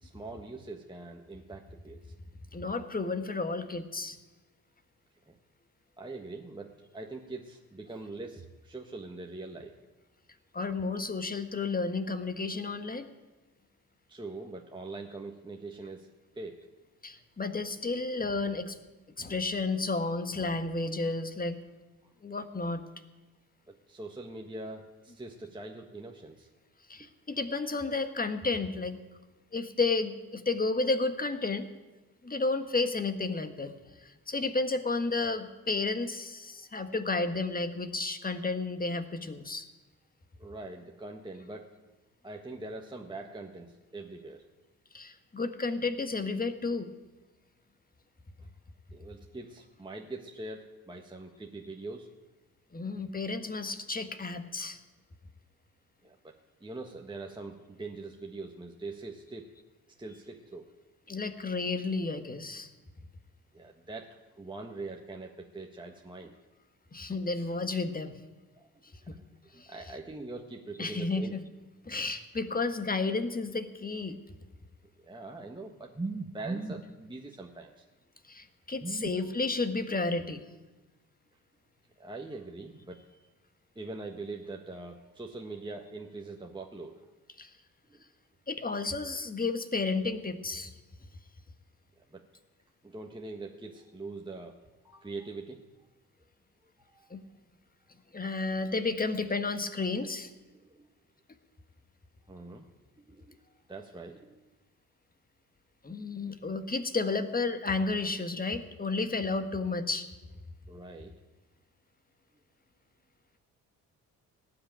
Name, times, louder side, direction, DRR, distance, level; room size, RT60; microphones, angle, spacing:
voice 1, 0.0-2.1 5.3-5.4 6.0-9.7 14.1-16.1 16.3-16.7 19.2-19.3 22.0-22.1 23.7-26.5 40.4-41.7 42.2-44.4 48.9-52.1 56.0-59.5 60.0-60.7 63.5-66.4 68.6-68.7 69.0-69.3 69.5-71.3 75.0-77.8 78.8-79.1 82.0-83.0 83.7-86.9 87.9-88.0 92.0-92.2 92.8-94.5 94.8-95.6 96.9-97.1 100.5-100.8 102.3-102.6 103.0-103.4 103.7-104.3 110.7-111.1, right 3 dB, 10° right, 1 dB, 1.4 m, -42 dB
voice 2, 2.5-4.2 10.5-13.1 17.0-18.8 19.2-21.6 22.2-22.8 26.9-29.0 29.5-31.7 32.2-39.7 44.9-46.9 52.7-54.8 61.1-62.7 66.9-68.2 69.6-69.7 70.8-71.4 71.8-74.2 78.2-80.5 87.4-87.5 88.5-90.7 97.1-97.2 98.1-100.3 105.8-110.1, left 3 dB, 20° left, 9 dB, 1.5 m, -32 dB
18.0 x 6.0 x 9.0 m, 1.2 s
hypercardioid pair, 45°, 43 cm